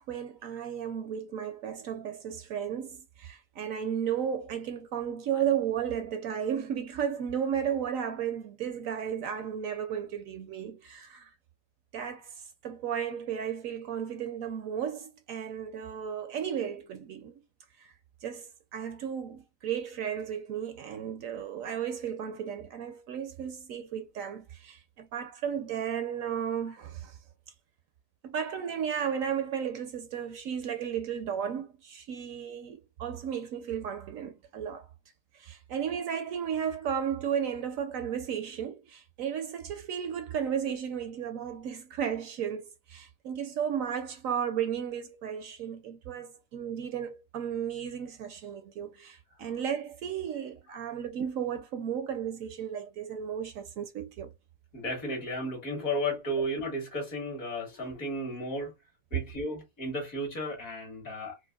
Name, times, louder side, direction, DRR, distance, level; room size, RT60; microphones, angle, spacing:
voice 1, 0.0-11.3 11.9-17.3 17.8-17.9 18.2-27.2 28.2-34.9 35.4-54.3, right 8 dB, 70° right, 0.9 m, -34 dB
voice 2, 54.7-58.7 59.1-61.3, equal, 60° left, 2.0 m, -34 dB
4.6 x 2.2 x 2.3 m
omnidirectional pair, 1.6 m